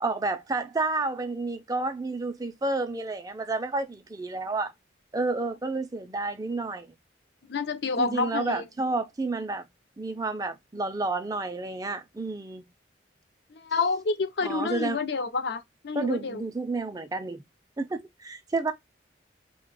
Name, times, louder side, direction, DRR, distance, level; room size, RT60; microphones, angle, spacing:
voice 1, 0.0-4.7 5.1-6.9 8.0-9.6 10.0-12.6 14.4-15.0 15.9-17.4 17.8-18.7, right 3 dB, 20° right, 0.4 m, -30 dB
voice 2, 7.5-8.6 13.6-16.4, left 4 dB, 60° left, 0.5 m, -29 dB
3.2 x 2.2 x 3.7 m
head